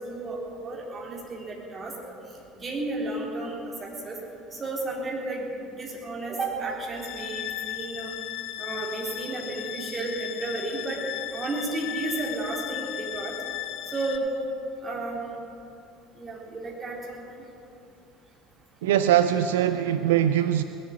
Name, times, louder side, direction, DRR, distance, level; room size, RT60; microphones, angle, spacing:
voice 1, 0.0-1.9 2.5-4.2 4.5-5.5 5.8-8.1 8.6-11.0 11.3-13.3 13.9-14.3 14.8-15.2 16.2-17.4, right 2 dB, 30° right, -2 dB, 3.8 m, -33 dB
sound 1, 6.9-14.2, left 12 dB, 60° left, 1.1 m, -36 dB
voice 2, 18.8-20.6, right 11 dB, 70° right, 11 dB, 0.4 m, -22 dB
20.0 x 7.4 x 8.6 m, 2.7 s
figure-of-eight pair, 65°, 0 cm